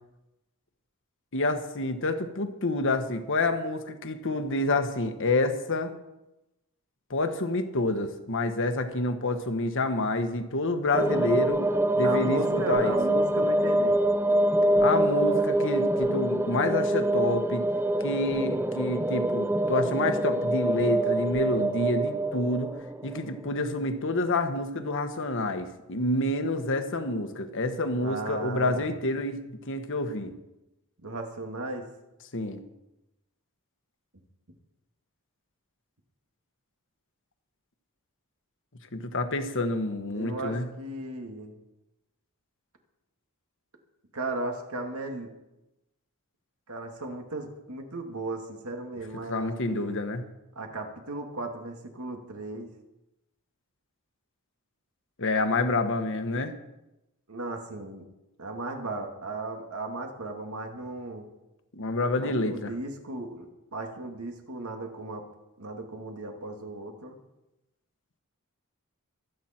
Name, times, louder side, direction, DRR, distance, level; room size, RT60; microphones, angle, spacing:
voice 1, 1.3-5.9 7.1-11.6 12.0-13.0 14.8-17.6 18.0-22.7 23.0-30.3 32.3-32.6 38.9-40.7 49.3-50.2 55.2-56.5 61.7-62.7, left 2 dB, 60° left, 7 dB, 1.4 m, -28 dB
sound 1, 10.9-23.4, right 1 dB, 10° right, 0.5 m, -25 dB
voice 2, 12.0-14.0 28.0-28.9 31.0-31.9 40.1-41.6 44.1-45.3 46.7-50.0 50.6-52.7 57.3-58.1 58.4-61.3 62.2-65.2 65.6-67.2, right 2 dB, 70° right, 3 dB, 2.3 m, -36 dB
24.5 x 9.3 x 4.5 m, 0.95 s
head